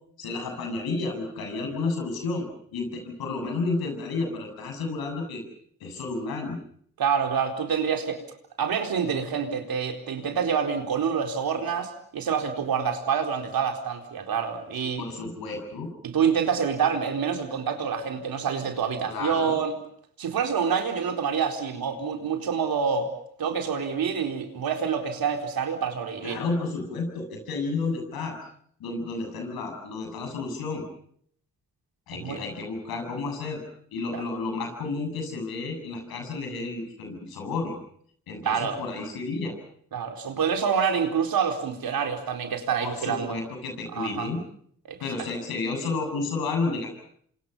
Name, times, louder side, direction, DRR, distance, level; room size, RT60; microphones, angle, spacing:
voice 1, 0.2-5.4 5.8-6.6 14.8-15.9 19.1-19.6 26.2-28.4 28.8-30.8 32.1-33.6 33.9-37.8 38.3-39.5 42.8-44.4 45.0-47.0, left 3 dB, 85° left, 4 dB, 7.6 m, -31 dB
voice 2, 7.0-8.2 8.6-15.0 16.0-19.7 20.2-23.1 23.4-26.4 32.1-32.4 34.1-34.2 38.4-38.8 39.9-43.4 43.9-44.3 44.8-45.0, right 7 dB, 75° right, 4 dB, 4.2 m, -27 dB
28.5 x 26.0 x 5.6 m, 0.63 s
supercardioid pair, 45°, 35 cm